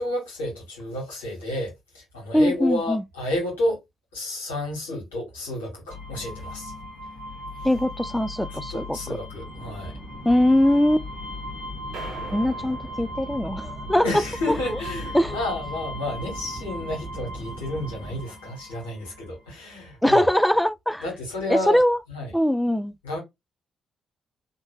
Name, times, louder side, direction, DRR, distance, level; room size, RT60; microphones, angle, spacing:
voice 1, 0.0-3.8 4.1-6.7 8.5-9.9 14.0-20.2 21.0-21.8 22.1-22.3 23.0-23.2, left 1 dB, 85° left, 1.8 m, -31 dB
voice 2, 2.3-3.0 7.6-9.2 10.2-11.1 12.3-14.0 15.1-15.4 20.0-21.0 21.5-22.0 22.3-22.9, left 1 dB, 5° left, 0.4 m, -21 dB
sound 1, 5.9-19.3, left 1 dB, 70° left, 1.4 m, -38 dB
sound 2, 9.3-18.2, right 3 dB, 40° right, 0.9 m, -41 dB
sound 3, 11.9-14.3, right 3 dB, 70° right, 1.3 m, -43 dB
3.3 x 2.7 x 3.1 m
hypercardioid pair, 40°, 0 cm